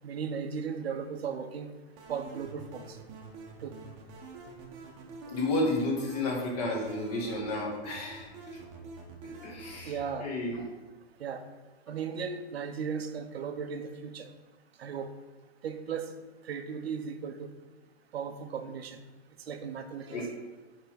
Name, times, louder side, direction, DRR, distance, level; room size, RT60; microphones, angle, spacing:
voice 1, 0.0-1.8 2.1-3.0 3.6-3.8 9.8-10.3 11.2-11.6 11.9-14.3 14.8-15.2 15.6-16.2 16.4-17.5 18.1-19.0 19.4-20.3, right 6 dB, 75° right, 8 dB, 0.9 m, -36 dB
sound 1, 2.0-10.0, right 3 dB, 25° right, 1.0 m, -47 dB
voice 2, 5.3-8.3 9.2-10.6 20.1-20.3, left 2 dB, 40° left, -1 dB, 2.0 m, -32 dB
9.3 x 3.8 x 5.2 m, 1.2 s
hypercardioid pair, 160°, 31 cm